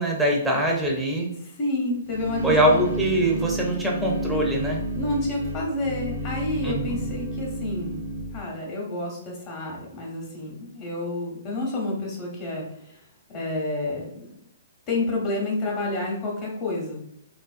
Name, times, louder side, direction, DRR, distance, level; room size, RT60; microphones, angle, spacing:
voice 1, 0.0-1.3 2.4-4.8 6.6-7.0, right 1 dB, 5° right, -1 dB, 0.5 m, -23 dB
voice 2, 1.4-2.8 5.0-8.0 8.3-13.0 13.3-14.3 14.9-17.0, left 2 dB, 30° left, -2 dB, 0.8 m, -29 dB
sound 1, 2.0-8.4, right 1 dB, 80° right, 0.6 m, -31 dB
2.4 x 2.1 x 2.4 m, 0.75 s
hypercardioid pair, 145°, 0 cm